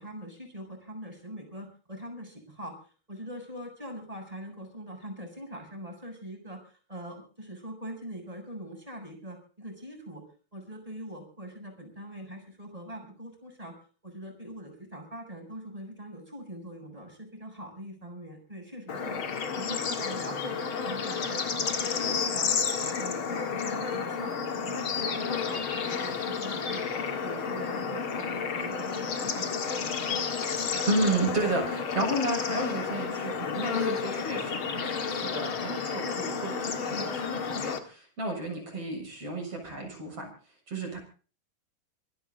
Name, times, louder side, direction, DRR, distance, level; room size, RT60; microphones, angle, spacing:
voice 1, 0.0-2.7 3.1-10.2 10.5-13.7 14.0-19.2 19.5-26.8 27.1-31.0 36.9-37.1 38.5-38.7, equal, 10° right, 3 dB, 6.7 m, -42 dB
Bird / Insect / Frog, 18.9-37.8, left 6 dB, 45° left, 2.0 m, -31 dB
voice 2, 30.9-40.3 40.7-41.0, right 2 dB, 40° right, 2 dB, 8.1 m, -32 dB
26.0 x 11.0 x 4.0 m, 0.39 s
omnidirectional pair, 4.4 m